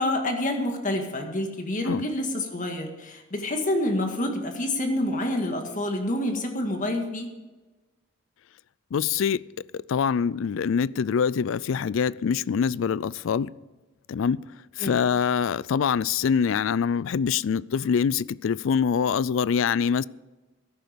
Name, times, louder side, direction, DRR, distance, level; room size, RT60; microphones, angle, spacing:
voice 1, 0.0-7.3 14.8-15.0, left 1 dB, 40° left, 1.8 m, -28 dB
voice 2, 8.9-9.4 9.9-13.5 14.1-14.4 14.8-20.0, left 6 dB, 70° left, 0.4 m, -24 dB
13.5 x 11.0 x 5.2 m
head